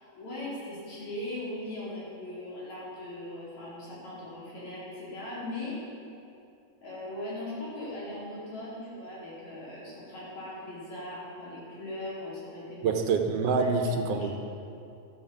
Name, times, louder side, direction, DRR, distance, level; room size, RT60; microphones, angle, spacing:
voice 1, 0.2-5.8 6.8-12.8 13.6-14.3, left 1 dB, 70° left, -8 dB, 5.4 m, -39 dB
voice 2, 12.8-14.3, right 4 dB, 65° right, 5 dB, 1.8 m, -26 dB
12.5 x 9.2 x 7.3 m, 2.6 s
omnidirectional pair, 3.3 m